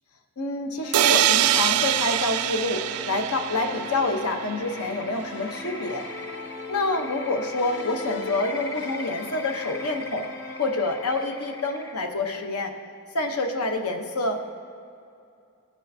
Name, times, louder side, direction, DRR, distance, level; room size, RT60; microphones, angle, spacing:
voice 1, 0.4-6.0 6.7-10.3 10.6-12.7 13.1-14.4, left 2 dB, 80° left, 4 dB, 0.8 m, -27 dB
sound 1, 0.8-12.1, left 3 dB, 55° left, 0.6 m, -41 dB
sound 2, 0.9-4.7, right 11 dB, 85° right, 0.3 m, -24 dB
sound 3, 4.6-12.1, left 2 dB, 15° left, 0.3 m, -41 dB
15.5 x 6.3 x 2.7 m, 2.5 s
head